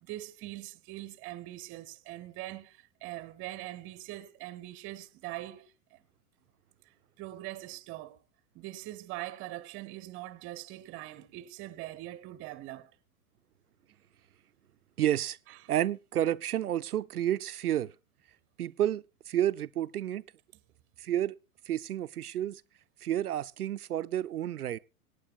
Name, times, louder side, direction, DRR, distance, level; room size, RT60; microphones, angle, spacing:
voice 1, 0.0-6.0 7.2-8.2 8.5-12.9 15.5-15.7, right 16 dB, 30° right, 0.7 m, -42 dB
voice 2, 15.0-15.4 15.7-17.9 18.6-20.2 21.0-21.4 21.7-22.6 23.0-24.8, right 11 dB, 85° right, 0.5 m, -30 dB
25.0 x 9.3 x 2.4 m
figure-of-eight pair, 95°, 44 cm